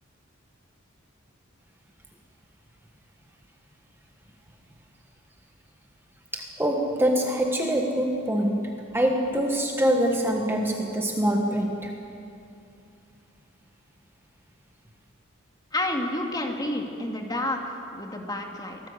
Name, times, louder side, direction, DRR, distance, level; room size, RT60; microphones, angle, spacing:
voice 1, 6.3-11.9, equal, 10° right, 2 dB, 1.4 m, -25 dB
voice 2, 15.7-18.8, left 1 dB, 20° left, 2 dB, 2.3 m, -30 dB
25.0 x 18.0 x 8.2 m, 2.6 s
head